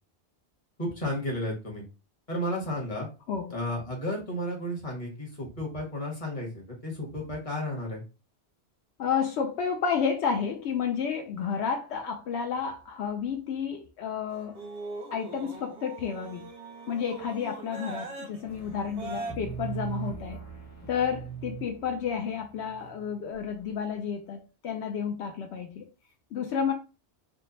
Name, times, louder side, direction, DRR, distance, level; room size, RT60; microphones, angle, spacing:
voice 1, 0.8-1.8 2.3-3.1 3.5-8.0, left 1 dB, 30° left, 1.4 m, -33 dB
voice 2, 9.0-14.6 15.1-16.5 16.9-20.4 20.9-25.9 26.3-26.7, left 6 dB, 80° left, 0.9 m, -31 dB
sound 1, 14.3-19.3, right 3 dB, 40° right, 0.6 m, -41 dB
sound 2, 18.4-23.4, right 7 dB, 15° left, 0.8 m, -40 dB
3.6 x 2.2 x 3.9 m
omnidirectional pair, 1.1 m